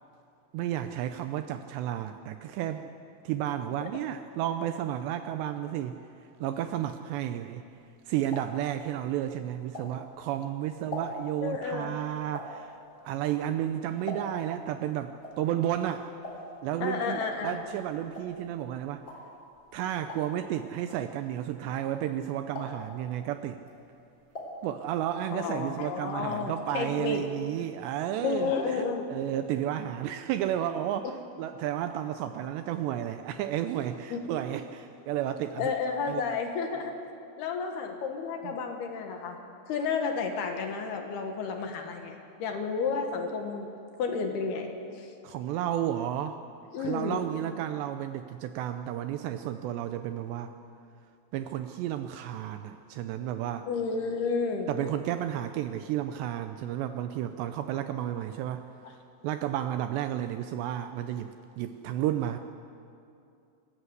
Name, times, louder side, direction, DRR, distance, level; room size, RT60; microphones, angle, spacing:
voice 1, 0.5-2.9 3.2-6.0 6.4-7.6 8.1-12.7 13.0-16.1 16.6-19.1 19.7-23.6 24.6-28.8 29.1-31.1 31.4-35.7 36.1-36.2 38.4-38.5 45.2-46.4 46.8-50.5 51.3-53.7 54.7-58.7 59.2-62.4, right 11 dB, 80° right, 9 dB, 2.6 m, -32 dB
sound 1, 7.8-10.3 10.7-14.6 14.9-22.2 22.5-23.0 23.5-25.2 25.5-26.6 26.9-27.0 27.2-27.3, left 1 dB, 25° left, 3.7 m, -43 dB
voice 2, 11.4-12.0 16.8-17.6 25.3-27.2 28.2-29.1 34.1-34.2 35.6-36.9 37.4-39.4 39.7-43.7 44.0-44.7 45.0-45.1 46.7-47.2 53.7-54.7, left 5 dB, 65° left, 4 dB, 3.1 m, -31 dB
28.5 x 14.0 x 8.0 m, 2.6 s
omnidirectional pair, 5.5 m